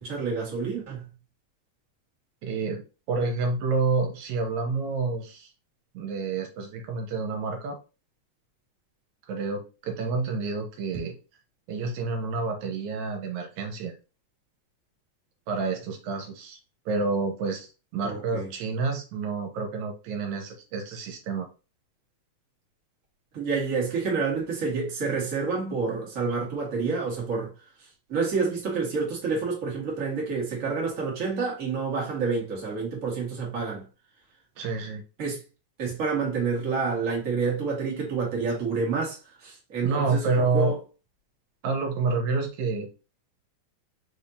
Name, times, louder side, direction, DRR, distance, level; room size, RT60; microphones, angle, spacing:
voice 1, 0.0-1.1 18.0-18.5 23.3-27.5 28.1-33.8 35.2-35.4 35.8-40.7, right 4 dB, 35° right, 1.7 m, -28 dB
voice 2, 2.4-2.8 3.1-5.5 5.9-7.8 9.3-11.2 11.7-13.9 15.5-16.6 16.9-21.5 34.6-35.0 39.8-40.7 41.6-42.9, right 4 dB, 80° right, 2.3 m, -28 dB
5.2 x 3.5 x 2.7 m
omnidirectional pair, 3.4 m